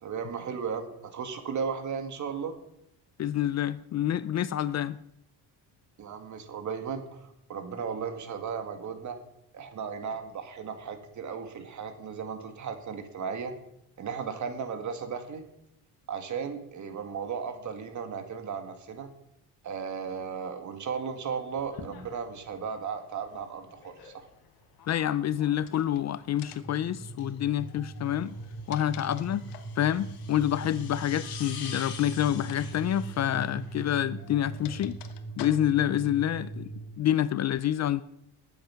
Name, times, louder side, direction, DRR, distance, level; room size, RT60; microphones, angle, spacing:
voice 1, 0.0-2.6 6.0-9.2 9.5-13.6 14.0-15.4 16.1-19.1 19.6-24.3, right 6 dB, 45° right, 2.0 m, -35 dB
voice 2, 3.2-5.0 24.9-28.3 28.7-29.4 29.8-35.0 35.4-36.7 37.0-38.0, left 11 dB, 45° left, 0.5 m, -27 dB
sound 1, 21.5-34.8, left 7 dB, 65° left, 4.2 m, -48 dB
sound 2, 25.6-26.0 26.4-26.8 28.3-29.8 31.6-31.9 32.4-32.6 32.9-33.0 34.0-35.9, left 11 dB, 90° left, 1.3 m, -48 dB
sound 3, 26.5-36.9, right 3 dB, 15° left, 3.8 m, -40 dB
19.5 x 8.6 x 5.8 m
cardioid pair, 140°, 40 cm